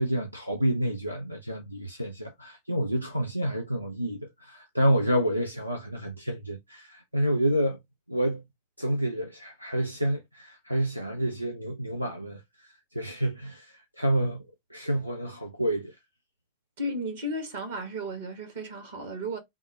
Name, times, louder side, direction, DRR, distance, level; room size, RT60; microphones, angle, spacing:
voice 1, 0.0-7.8 8.1-8.4 8.8-12.7 12.9-15.9, right 1 dB, 90° right, 0.5 m, -29 dB
voice 2, 16.8-19.4, equal, 55° right, 1.5 m, -34 dB
3.6 x 2.0 x 3.7 m
figure-of-eight pair, 90°, 0 cm